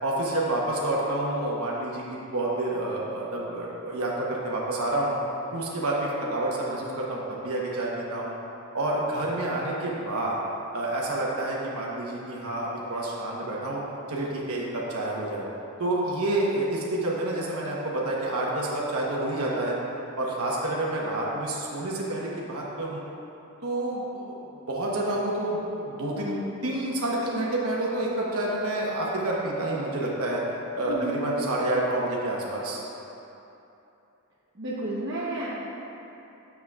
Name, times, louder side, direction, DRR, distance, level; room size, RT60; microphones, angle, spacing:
voice 1, 0.0-5.1 5.5-8.3 8.7-10.4 10.7-13.8 14.1-15.4 15.8-19.8 20.2-23.0 23.6-24.4 24.7-30.4 30.8-32.8, right 1 dB, 80° right, -4 dB, 1.1 m, -28 dB
voice 2, 30.9-31.2 34.6-35.5, right 1 dB, 55° right, -9 dB, 0.9 m, -31 dB
10.0 x 7.1 x 2.4 m, 2.9 s
head